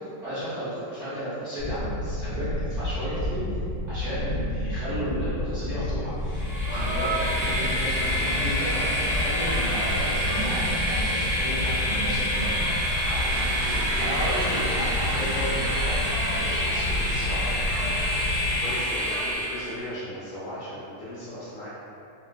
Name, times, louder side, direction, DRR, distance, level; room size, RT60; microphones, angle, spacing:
voice 1, 0.2-3.4 3.9-17.6, right 1 dB, 60° right, -13 dB, 0.7 m, -33 dB
sound 1, 1.6-18.6, left 1 dB, 15° right, 1.0 m, -30 dB
Train, 6.3-19.8, equal, 5° left, 0.8 m, -27 dB
voice 2, 18.6-21.7, equal, 75° left, -10 dB, 0.7 m, -37 dB
3.7 x 2.3 x 2.2 m, 2.7 s
omnidirectional pair, 2.4 m